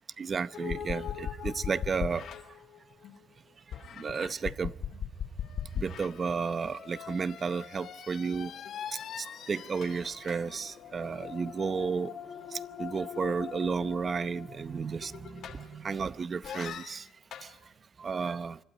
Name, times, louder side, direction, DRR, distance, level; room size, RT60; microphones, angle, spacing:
voice 1, 0.2-2.3 3.9-4.7 5.7-8.5 9.2-12.1 12.5-17.1 17.4-17.5 18.0-18.6, right 5 dB, 40° right, 0.8 m, -33 dB
sound 1, 0.5-3.2 3.7-16.0 16.4-17.5, left 8 dB, 70° left, 2.7 m, -40 dB
27.0 x 12.5 x 10.0 m
cardioid pair, 90°, 0 cm